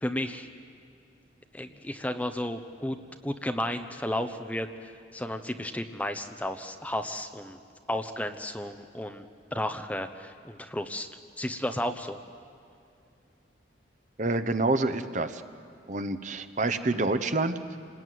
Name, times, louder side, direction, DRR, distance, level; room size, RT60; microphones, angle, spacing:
voice 1, 0.0-0.5 1.5-3.0 3.2-7.6 7.9-9.2 9.5-11.1 11.4-12.2, left 1 dB, 10° left, 6 dB, 0.9 m, -33 dB
voice 2, 14.2-15.4 15.9-17.8, right 2 dB, 40° right, 9 dB, 0.9 m, -27 dB
28.0 x 20.0 x 9.4 m, 2.6 s
head